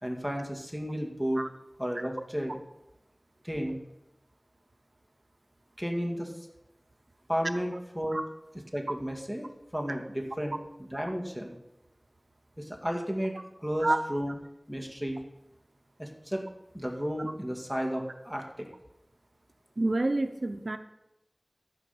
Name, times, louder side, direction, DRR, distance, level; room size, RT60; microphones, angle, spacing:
voice 1, 0.0-1.4 1.8-2.6 3.4-3.8 5.8-6.3 7.3-8.2 8.7-11.5 12.6-13.3 13.6-14.4 14.7-15.2 16.0-16.4 16.7-18.7, equal, ahead, 1 dB, 2.0 m, -33 dB
voice 2, 19.8-20.8, right 2 dB, 85° right, 8 dB, 0.6 m, -28 dB
14.0 x 5.0 x 7.0 m, 0.91 s
wide cardioid pair, 45°, 0 cm